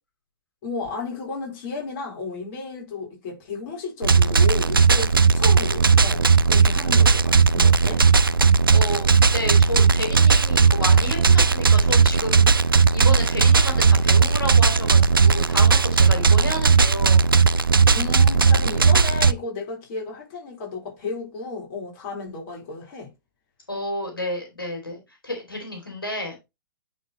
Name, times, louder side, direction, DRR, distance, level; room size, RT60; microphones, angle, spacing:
voice 1, 0.6-8.0 17.9-23.1, left 4 dB, 40° left, 4.2 m, -33 dB
sound 1, 4.0-19.3, right 5 dB, 80° right, 0.5 m, -17 dB
voice 2, 8.7-17.3 23.7-26.3, left 1 dB, 80° left, 2.8 m, -31 dB
9.8 x 4.5 x 3.1 m
figure-of-eight pair, 110°, 12 cm